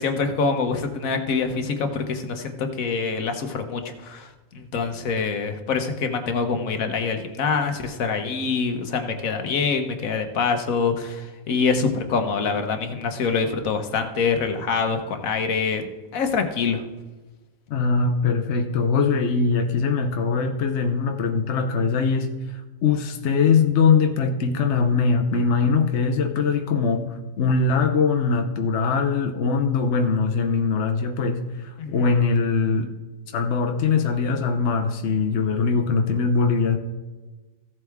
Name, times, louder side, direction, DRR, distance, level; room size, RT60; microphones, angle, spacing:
voice 1, 0.0-16.8 31.8-32.1, left 5 dB, 85° left, 6 dB, 1.4 m, -25 dB
voice 2, 17.7-22.3 22.8-32.9 33.3-36.8, left 5 dB, 60° left, 6 dB, 1.0 m, -22 dB
15.0 x 7.7 x 3.5 m, 1.2 s
omnidirectional pair, 1.4 m